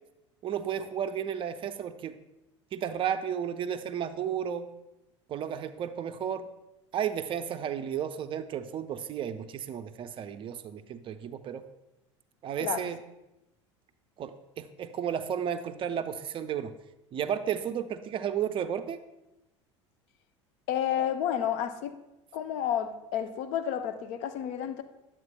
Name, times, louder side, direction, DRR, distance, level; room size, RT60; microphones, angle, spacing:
voice 1, 0.4-2.2 2.7-4.7 5.3-6.5 6.9-11.6 12.4-13.0 14.2-16.7 17.1-19.0, right 8 dB, 35° right, 10 dB, 0.5 m, -33 dB
voice 2, 20.7-21.9 22.3-24.8, left 9 dB, 50° left, 9 dB, 0.6 m, -30 dB
11.0 x 7.5 x 2.2 m, 0.95 s
figure-of-eight pair, 75°, 16 cm